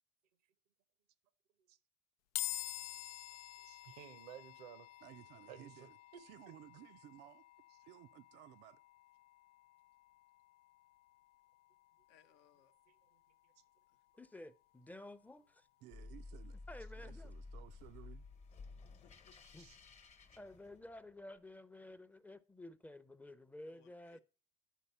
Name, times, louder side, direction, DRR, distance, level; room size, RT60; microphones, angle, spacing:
sound 1, 2.4-15.7, left 16 dB, 85° left, 0.4 m, -50 dB
voice 1, 3.6-4.9 5.5-5.9 12.9-13.2 19.6-19.8, right 11 dB, 90° right, 0.9 m, -55 dB
voice 2, 5.0-7.5 7.9-8.8 15.8-16.6 17.0-18.3, right 15 dB, 65° right, 0.4 m, -57 dB
voice 3, 12.1-12.7 19.0-19.4 23.7-24.2, left 9 dB, 65° left, 0.8 m, -68 dB
voice 4, 14.2-15.7 16.7-17.3 19.5-19.7 20.4-24.2, left 1 dB, 10° left, 0.6 m, -52 dB
sound 2, 15.9-21.2, left 3 dB, 35° left, 1.0 m, -53 dB
10.0 x 4.1 x 5.5 m
supercardioid pair, 85°, 19 cm